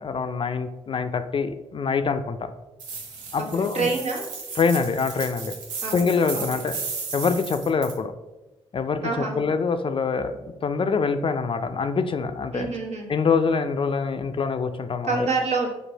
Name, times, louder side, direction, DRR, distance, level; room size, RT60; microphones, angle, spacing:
voice 1, 0.0-2.5 3.3-3.9 4.6-5.6 5.9-6.8 7.1-8.1 8.7-12.7 13.1-15.3, left 5 dB, 45° left, 9 dB, 0.4 m, -25 dB
sound 1, 2.8-8.0, right 4 dB, 85° right, 0.7 m, -35 dB
voice 2, 3.4-4.3 5.8-6.0 6.3-6.4 9.0-9.4 12.5-13.1 15.0-15.7, right 4 dB, 65° right, 0 dB, 1.1 m, -27 dB
4.5 x 2.6 x 3.9 m, 1.0 s
supercardioid pair, 45°, 12 cm